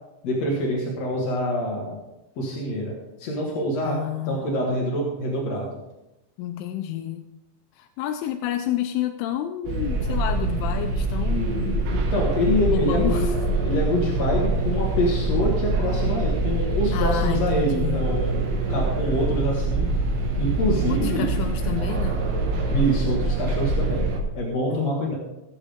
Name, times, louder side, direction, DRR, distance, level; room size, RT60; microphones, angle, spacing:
voice 1, 0.2-2.0 2.4-2.9 3.2-5.7 11.9-13.3 13.6-18.4 18.7-19.9 20.4-21.3 22.7-25.1, equal, 55° left, -3 dB, 2.0 m, -26 dB
voice 2, 3.8-4.6 6.4-7.3 7.8-11.8 12.6-13.4 16.9-18.1 20.9-22.2 24.7-25.2, left 12 dB, 85° left, 7 dB, 3.0 m, -30 dB
sound 1, 9.7-24.2, right 2 dB, 70° right, 3.7 m, -24 dB
17.5 x 9.8 x 3.6 m, 0.95 s
omnidirectional pair, 5.5 m